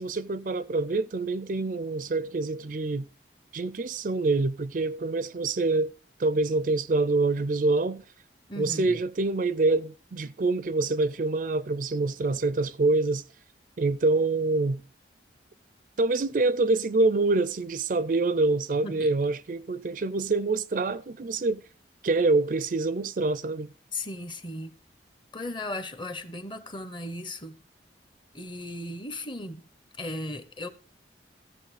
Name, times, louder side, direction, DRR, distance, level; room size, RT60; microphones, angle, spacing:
voice 1, 0.0-3.1 3.5-5.9 6.2-8.0 8.6-13.2 13.8-14.8 16.0-21.6 22.0-23.7, right 3 dB, 45° right, 0.4 m, -26 dB
voice 2, 8.5-9.0 18.8-19.1 23.9-24.8 25.3-27.6 28.3-29.7 30.0-30.7, left 1 dB, 25° left, 0.9 m, -36 dB
15.0 x 7.0 x 4.9 m
head